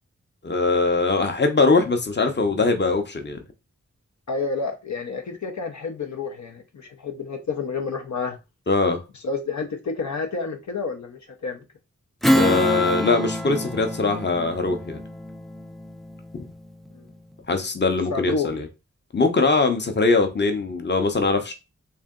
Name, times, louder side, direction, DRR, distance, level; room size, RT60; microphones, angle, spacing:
voice 1, 0.4-3.4 8.7-9.0 12.3-15.0 16.3-16.4 17.5-18.7 19.1-21.5, left 3 dB, 35° left, 0.8 m, -21 dB
voice 2, 4.3-8.4 9.2-11.6 16.9-17.1 18.1-18.5, left 4 dB, 70° left, 0.7 m, -29 dB
Strum, 12.2-17.1, equal, ahead, 0.3 m, -26 dB
3.3 x 2.7 x 3.7 m
cardioid pair, 50°, 30 cm